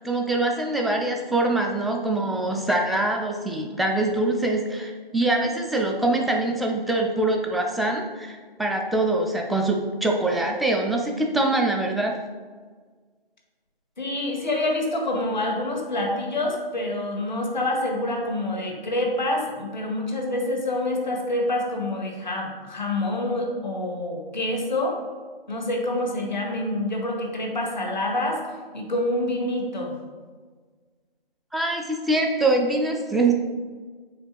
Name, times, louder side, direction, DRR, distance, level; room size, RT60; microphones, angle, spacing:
voice 1, 0.0-12.1 31.5-33.3, right 2 dB, ahead, 0 dB, 0.3 m, -24 dB
voice 2, 14.0-25.0 25.5-28.4 28.7-29.9, left 1 dB, 50° left, 1 dB, 1.8 m, -27 dB
7.1 x 4.9 x 5.0 m, 1.5 s
figure-of-eight pair, 170°, 30 cm